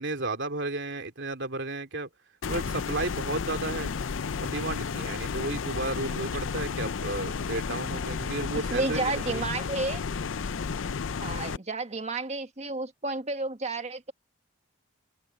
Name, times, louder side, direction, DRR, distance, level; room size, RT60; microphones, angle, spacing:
voice 1, 0.0-2.1 2.5-3.9 4.4-9.5, right 2 dB, 65° right, 3.3 m, -33 dB
sound 1, 2.4-11.6, left 5 dB, 70° left, 0.5 m, -32 dB
voice 2, 8.5-10.0 11.2-14.1, right 3 dB, 35° right, 1.6 m, -31 dB
open air
head